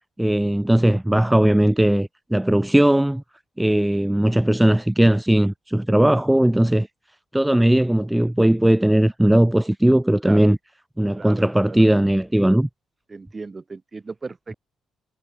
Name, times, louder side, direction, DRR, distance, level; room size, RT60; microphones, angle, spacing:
voice 1, 0.2-3.2 3.6-6.9 7.3-10.6 11.0-12.7, right 1 dB, 5° right, 0.7 m, -18 dB
voice 2, 11.1-11.9 13.1-14.5, right 3 dB, 25° right, 1.4 m, -36 dB
cardioid pair, 90°, 0 cm